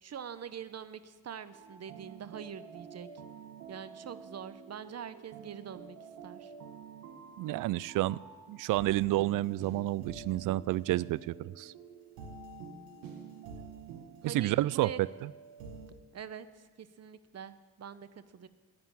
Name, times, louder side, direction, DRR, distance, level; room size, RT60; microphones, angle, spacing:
voice 1, 0.0-3.1 3.7-6.0 6.2-6.5 14.2-15.0 16.1-18.5, right 8 dB, 45° right, 14 dB, 1.0 m, -44 dB
sound 1, 1.5-15.9, right 5 dB, 85° right, 1.5 m, -48 dB
voice 2, 7.4-8.2 8.5-11.7 14.2-15.3, right 17 dB, 65° right, 22 dB, 0.4 m, -30 dB
11.0 x 9.7 x 8.8 m, 1.4 s
supercardioid pair, 55°, 34 cm